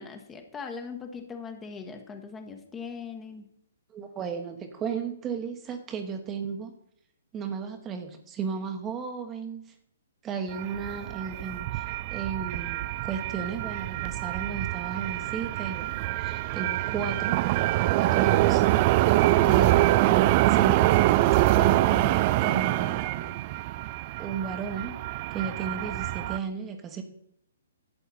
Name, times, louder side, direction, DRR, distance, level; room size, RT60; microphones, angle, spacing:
voice 1, 0.0-3.5 19.5-19.9, left 5 dB, 15° left, 5 dB, 1.3 m, -40 dB
voice 2, 3.9-6.7 7.3-9.6 10.2-17.4 18.0-18.7 18.9-23.4 24.2-25.0 25.3-27.0, right 6 dB, 20° right, 5 dB, 1.2 m, -34 dB
sound 1, 10.5-26.4, right 16 dB, 35° right, 0.4 m, -25 dB
11.5 x 8.0 x 4.2 m, 0.72 s
figure-of-eight pair, 125°, 0 cm